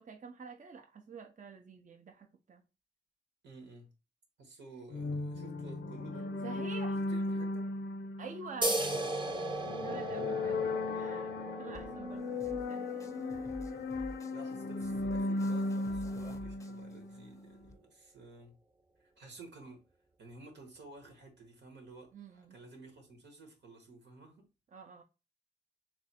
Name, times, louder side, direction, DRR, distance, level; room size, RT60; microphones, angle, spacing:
voice 1, 0.0-2.6 6.4-7.0 8.2-8.8 9.8-13.1 22.1-22.6 24.7-25.0, right 5 dB, 45° right, 0.5 m, -48 dB
voice 2, 3.4-3.9 4.4-6.6 7.1-7.7 10.1-10.3 14.3-18.5 19.0-19.8 20.2-24.5, right 3 dB, 85° right, 1.2 m, -53 dB
sound 1, 4.9-17.4, left 2 dB, 85° left, 0.5 m, -36 dB
sound 2, 8.6-15.7, right 2 dB, 25° right, 0.8 m, -38 dB
sound 3, 11.7-17.7, left 2 dB, 15° left, 0.6 m, -52 dB
3.2 x 2.6 x 4.0 m
cardioid pair, 70°, 18 cm